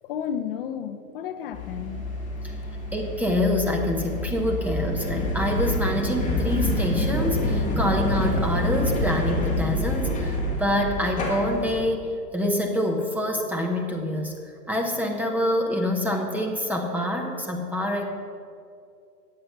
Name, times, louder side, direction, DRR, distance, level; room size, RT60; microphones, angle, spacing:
voice 1, 0.0-2.1, left 8 dB, 35° left, 9 dB, 0.5 m, -32 dB
sound 1, 1.5-11.8, left 1 dB, 15° left, 2.2 m, -27 dB
voice 2, 2.9-12.1 12.3-14.4 14.7-18.1, left 1 dB, 5° right, 0 dB, 0.6 m, -26 dB
9.6 x 8.0 x 6.7 m, 2.4 s
hypercardioid pair, 125°, 49 cm